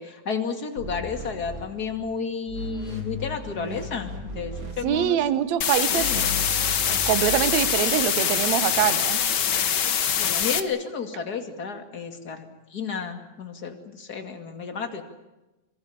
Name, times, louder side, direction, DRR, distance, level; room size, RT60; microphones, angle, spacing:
voice 1, 0.0-5.2 5.9-6.3 10.2-15.0, left 5 dB, 35° left, 6 dB, 2.5 m, -32 dB
sound 1, 0.8-2.2 2.5-5.3 5.9-7.6, left 1 dB, 45° right, 5.2 m, -36 dB
voice 2, 4.8-6.1 7.1-9.2, right 11 dB, 75° right, 13 dB, 2.3 m, -24 dB
sound 2, 5.6-10.6, left 8 dB, 50° left, 1.3 m, -24 dB
25.5 x 23.5 x 7.2 m, 1.0 s
omnidirectional pair, 3.3 m